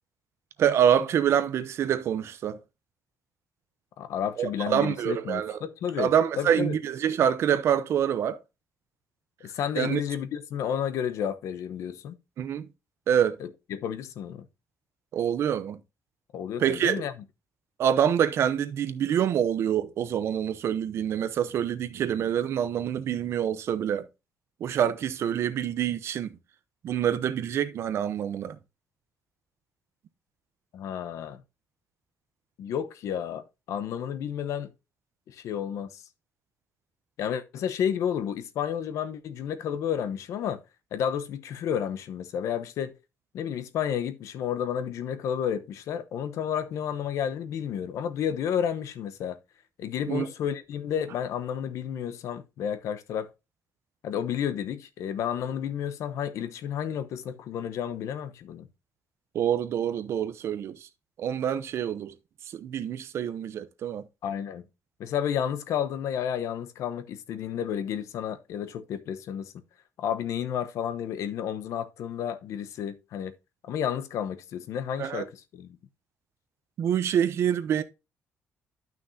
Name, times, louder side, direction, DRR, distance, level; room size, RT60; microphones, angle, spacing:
voice 1, 0.6-2.6 4.4-5.6 6.0-8.4 9.8-10.0 12.4-12.7 13.1-13.4 15.1-15.8 16.6-17.1 17.8-24.1 24.6-26.3 26.8-28.6 50.1-50.3 59.3-60.8 61.2-62.1 62.5-64.1 75.0-75.2 76.8-77.8, right 9 dB, 55° right, 0.7 m, -26 dB
voice 2, 4.0-6.8 9.4-12.2 13.4-14.5 16.3-17.1 30.7-31.4 32.6-34.7 35.3-36.0 37.2-40.6 40.9-42.9 43.3-49.4 49.8-53.3 54.0-58.7 64.2-64.6 65.0-69.5 70.0-73.3 73.7-75.8, left 9 dB, 75° left, 0.9 m, -31 dB
12.0 x 6.0 x 2.7 m
cardioid pair, 175°, 5 cm